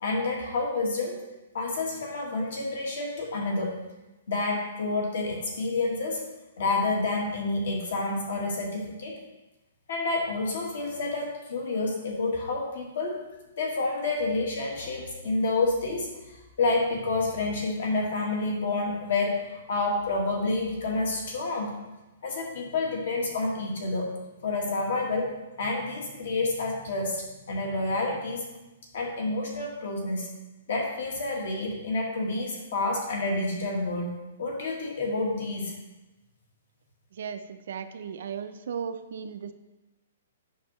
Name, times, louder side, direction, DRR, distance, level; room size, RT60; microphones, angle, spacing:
voice 1, 0.0-1.2 1.5-3.8 4.3-6.2 6.6-9.2 9.9-13.2 13.6-16.1 16.6-21.7 22.2-24.1 24.4-28.4 28.9-30.3 30.7-34.1 34.4-35.7, left 2 dB, 55° left, 0 dB, 1.6 m, -29 dB
voice 2, 37.1-39.5, right 7 dB, 50° right, 9 dB, 0.4 m, -36 dB
8.3 x 5.8 x 3.0 m, 1.1 s
hypercardioid pair, 180°, 0 cm